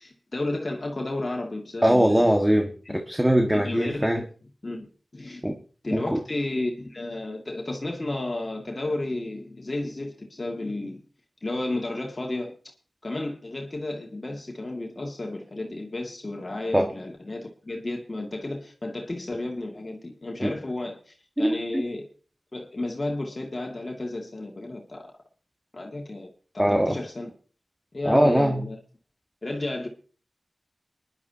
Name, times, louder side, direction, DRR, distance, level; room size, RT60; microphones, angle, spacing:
voice 1, 0.0-2.3 2.9-3.0 3.5-4.3 4.6-4.9 5.1-5.4 5.8-11.0 11.4-12.5 13.0-22.1 22.5-25.1 25.7-26.3 26.5-27.3 27.9-28.8 29.4-29.9, left 2 dB, 45° left, 2.1 m, -32 dB
voice 2, 1.8-4.2 5.4-5.6 5.9-6.2 16.7-16.9 20.4-20.5 21.4-21.5 21.7-21.8 26.6-27.0 28.1-28.6, equal, 10° right, 1.6 m, -21 dB
22.5 x 11.0 x 2.8 m
cardioid pair, 40°, 0 cm